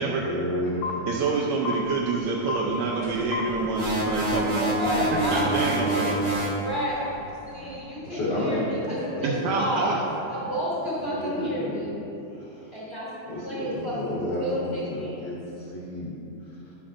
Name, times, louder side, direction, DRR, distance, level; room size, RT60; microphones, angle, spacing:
voice 1, 0.0-1.0 4.6-4.7 8.0-10.3 11.0-11.9 12.3-12.8 13.3-16.7, left 1 dB, 55° left, -7 dB, 1.2 m, -32 dB
sound 1, 0.8-0.9 1.7-1.8 2.5-2.6 3.3-3.4 4.1-6.2, left 3 dB, 80° left, 1.8 m, -34 dB
voice 2, 1.1-4.7 5.1-6.2 9.2-10.0, right 4 dB, 80° right, -4 dB, 1.8 m, -27 dB
sound 2, 1.8-7.8, equal, 25° right, 0.8 m, -41 dB
sound 3, 3.7-6.6, right 1 dB, 55° right, 1.0 m, -26 dB
voice 3, 4.7-6.1 6.6-7.1 7.4-12.0 12.7-13.1 13.4-14.1 14.4-15.3, equal, 40° left, -8 dB, 0.9 m, -31 dB
11.5 x 5.8 x 2.5 m, 2.9 s
omnidirectional pair, 3.5 m